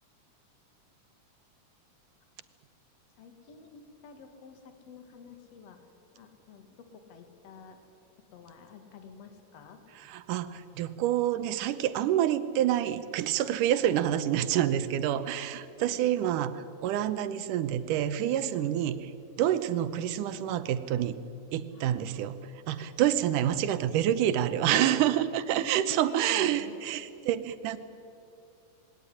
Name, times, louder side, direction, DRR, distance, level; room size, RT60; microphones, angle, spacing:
voice 1, 3.2-7.8 8.2-9.8 15.8-16.0 18.6-18.8 21.7-22.3 22.7-23.2 24.7-26.8, left 4 dB, 60° left, 6 dB, 2.9 m, -48 dB
voice 2, 10.1-19.0 19.4-21.2 21.5-27.8, right 11 dB, 85° right, 13 dB, 2.5 m, -28 dB
20.5 x 18.0 x 9.9 m, 2.6 s
omnidirectional pair, 3.6 m